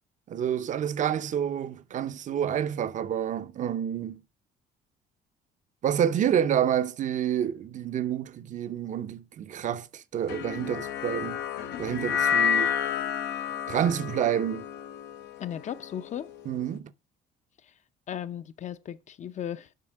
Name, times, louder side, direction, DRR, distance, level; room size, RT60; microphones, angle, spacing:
voice 1, 0.3-4.2 5.8-11.4 11.8-12.7 13.7-14.7 16.5-16.9, right 9 dB, 50° right, 0.7 m, -28 dB
sound 1, 10.3-16.7, left 8 dB, 85° left, 1.0 m, -30 dB
voice 2, 15.4-16.3 17.6-17.7 18.1-19.7, left 9 dB, 45° left, 0.6 m, -36 dB
7.6 x 5.6 x 6.4 m
cardioid pair, 110°, 17 cm